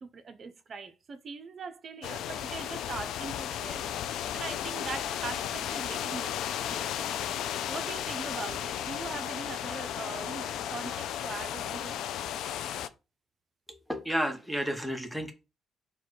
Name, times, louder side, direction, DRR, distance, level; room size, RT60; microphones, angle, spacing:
voice 1, 0.0-7.1 7.7-12.0, right 4 dB, 50° right, 0.6 m, -41 dB
sound 1, 2.0-12.9, left 10 dB, 85° left, 0.3 m, -34 dB
voice 2, 13.7-15.3, equal, ahead, 1.0 m, -32 dB
4.1 x 2.3 x 4.6 m
cardioid pair, 90°, 0 cm